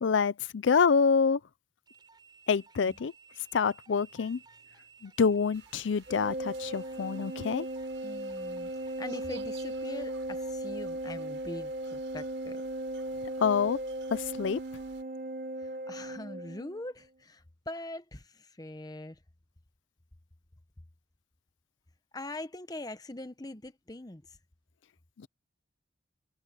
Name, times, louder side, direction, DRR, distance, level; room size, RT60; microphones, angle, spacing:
voice 1, 0.0-1.4 2.5-3.1 3.5-4.4 5.0-7.7 13.4-13.8 14.1-14.6 25.2-25.3, left 5 dB, 80° left, 0.5 m, -26 dB
sound 1, 1.9-10.5, right 5 dB, 25° right, 3.6 m, -58 dB
sound 2, 5.5-15.0, right 6 dB, 90° right, 6.0 m, -57 dB
Organ, 6.1-16.8, right 1 dB, 45° right, 1.1 m, -37 dB
voice 2, 8.0-12.6 15.6-19.2 22.1-24.4, left 1 dB, 20° left, 0.9 m, -42 dB
head